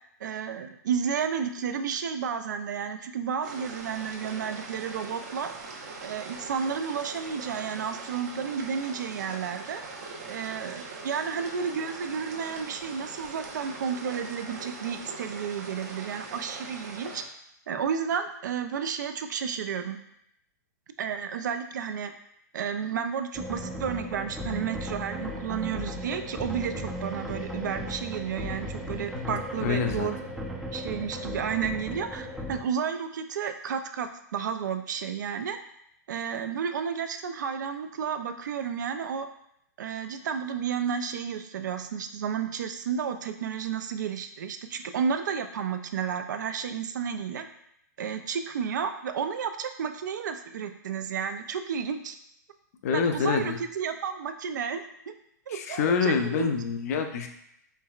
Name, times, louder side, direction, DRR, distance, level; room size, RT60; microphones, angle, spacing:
voice 1, 0.2-5.5 6.0-9.8 10.3-17.2 17.7-20.0 21.0-22.1 22.5-30.2 30.7-35.6 36.1-39.3 39.8-47.5 48.0-52.2 52.9-55.1 55.5-56.5, right 7 dB, 75° right, 8 dB, 0.4 m, -32 dB
sound 1, 3.4-17.2, right 3 dB, 60° right, 0.8 m, -41 dB
sound 2, 23.3-32.6, equal, 5° right, 0.4 m, -36 dB
voice 2, 29.1-30.1 52.8-53.6 55.5-57.3, left 6 dB, 55° left, 6 dB, 0.5 m, -27 dB
4.6 x 3.2 x 2.3 m, 0.76 s
hypercardioid pair, 140°, 10 cm